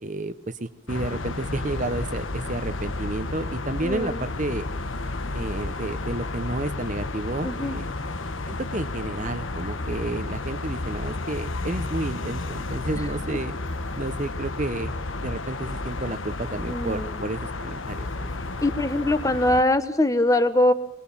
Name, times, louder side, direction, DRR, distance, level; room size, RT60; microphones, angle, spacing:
voice 1, 0.0-4.7 5.3-7.9 8.5-13.5 14.0-14.9 15.2-18.3, right 2 dB, 35° right, 12 dB, 0.9 m, -31 dB
sound 1, 0.9-19.6, left 2 dB, 75° left, 1.5 m, -32 dB
voice 2, 3.8-4.1 7.4-7.8 16.7-17.1 18.6-20.7, left 1 dB, 15° left, 10 dB, 1.2 m, -22 dB
23.0 x 23.0 x 7.3 m, 0.72 s
head